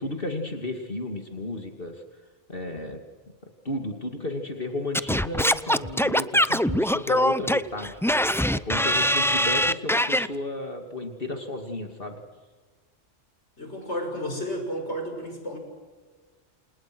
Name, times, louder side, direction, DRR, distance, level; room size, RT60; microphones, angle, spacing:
voice 1, 0.0-2.0 2.5-3.0 3.6-8.0 8.5-12.2, left 1 dB, 50° left, 4 dB, 2.8 m, -33 dB
Singing / Scratching (performance technique), 4.9-10.3, equal, 5° left, 0.4 m, -23 dB
voice 2, 13.6-15.6, equal, 70° left, 4 dB, 6.3 m, -32 dB
29.0 x 28.0 x 6.3 m, 1.4 s
omnidirectional pair, 1.2 m